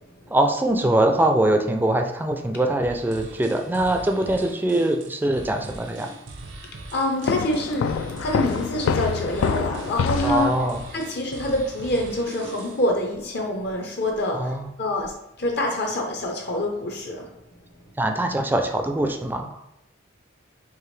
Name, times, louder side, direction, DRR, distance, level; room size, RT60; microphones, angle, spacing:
voice 1, 0.3-6.1 10.2-10.8 14.3-14.7 18.0-19.6, right 1 dB, 10° right, 4 dB, 0.3 m, -22 dB
sound 1, 2.8-12.9, right 2 dB, 70° right, 0.6 m, -41 dB
voice 2, 6.9-7.9 8.2-10.5 10.9-15.1 15.4-17.3, left 1 dB, 60° left, 0 dB, 0.8 m, -26 dB
sound 2, 7.3-11.0, left 6 dB, 90° left, 0.3 m, -26 dB
4.7 x 2.9 x 3.2 m, 0.83 s
head